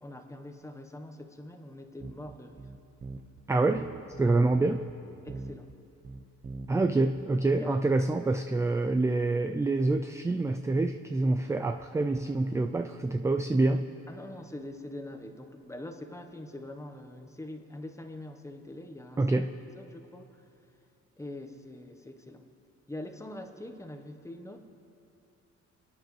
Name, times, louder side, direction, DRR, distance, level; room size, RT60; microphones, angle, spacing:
voice 1, 0.0-2.7 4.2-4.5 5.2-5.7 7.6-7.8 14.1-19.4 19.7-20.4 21.2-22.4 22.9-24.6, left 1 dB, 10° left, 6 dB, 1.1 m, -43 dB
sound 1, 2.0-3.4 3.7-4.9 5.3-5.8 6.0-6.9 7.2-7.3, right 3 dB, 25° right, 0.7 m, -43 dB
voice 2, 3.5-3.9 4.2-4.8 6.7-13.9 19.2-19.6, right 2 dB, 10° right, 7 dB, 0.3 m, -26 dB
27.0 x 9.4 x 3.2 m, 2.7 s
cardioid pair, 90°, 30 cm